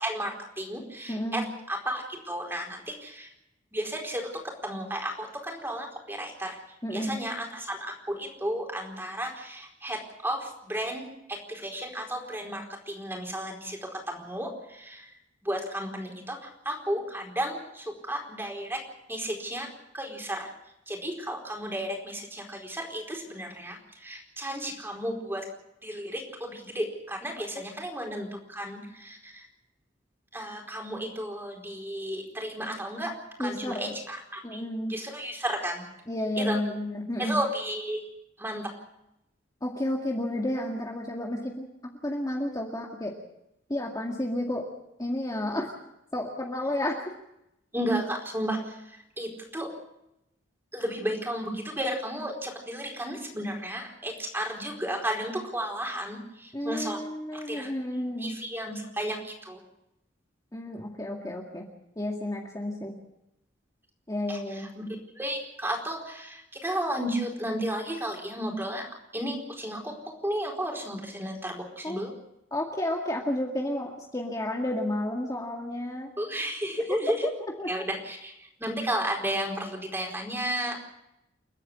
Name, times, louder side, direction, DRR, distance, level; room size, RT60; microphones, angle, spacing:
voice 1, 0.0-3.3 3.7-6.6 6.9-15.2 15.4-18.8 19.1-20.5 20.9-25.4 25.8-29.5 30.3-33.1 33.4-34.6 34.9-35.8 36.4-36.6 37.2-38.1 38.4-38.7 47.7-49.7 50.7-57.0 57.3-57.7 58.2-59.6 64.3-64.8 65.1-72.1 76.2-77.3 77.7-80.8, right 1 dB, 10° right, 1 dB, 4.6 m, -33 dB
voice 2, 1.1-1.4 6.8-7.2 27.6-27.7 33.4-33.9 34.4-34.9 36.1-37.4 39.6-41.7 42.0-43.1 43.7-44.6 45.0-45.7 46.1-47.0 56.5-58.4 60.5-61.7 62.0-62.9 64.1-64.7 71.8-72.0 72.5-76.1 77.2-77.3 77.6-77.7, left 1 dB, 20° left, 0 dB, 2.1 m, -31 dB
29.5 x 9.9 x 9.8 m, 0.86 s
head